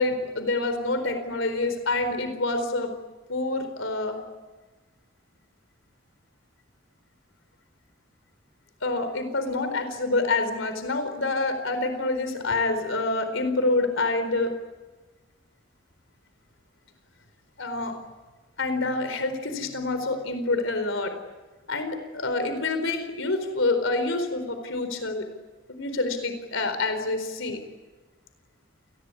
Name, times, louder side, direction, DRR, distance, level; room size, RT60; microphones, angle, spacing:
voice 1, 0.0-2.9 3.3-4.2 8.8-14.5 17.6-17.9 18.6-21.1 21.7-25.3 25.7-27.6, left 2 dB, 65° left, 8 dB, 4.4 m, -27 dB
29.0 x 20.5 x 9.9 m, 1.2 s
head